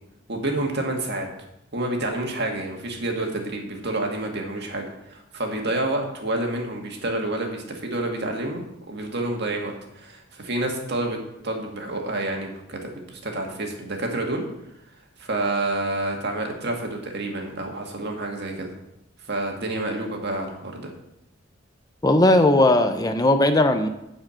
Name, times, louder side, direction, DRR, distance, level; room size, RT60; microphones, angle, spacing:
voice 1, 0.3-1.3 1.7-11.2 11.4-14.4 15.2-18.7 19.3-20.9, right 2 dB, 55° right, 2 dB, 1.8 m, -28 dB
voice 2, 22.0-23.9, left 1 dB, 20° left, 7 dB, 0.6 m, -18 dB
10.0 x 4.9 x 7.6 m, 0.86 s
head